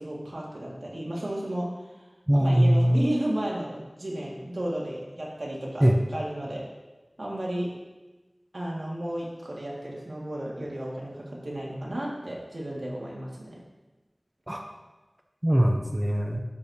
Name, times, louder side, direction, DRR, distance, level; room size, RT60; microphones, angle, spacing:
voice 1, 0.0-1.7 2.4-6.6 7.2-7.7 8.5-13.5, right 1 dB, 80° right, -4 dB, 1.9 m, -33 dB
voice 2, 2.3-3.0 5.8-5.9 14.5-14.6 15.4-16.4, equal, 20° right, 2 dB, 0.7 m, -21 dB
10.5 x 6.4 x 2.8 m, 1.1 s
wide cardioid pair, 45°, 0 cm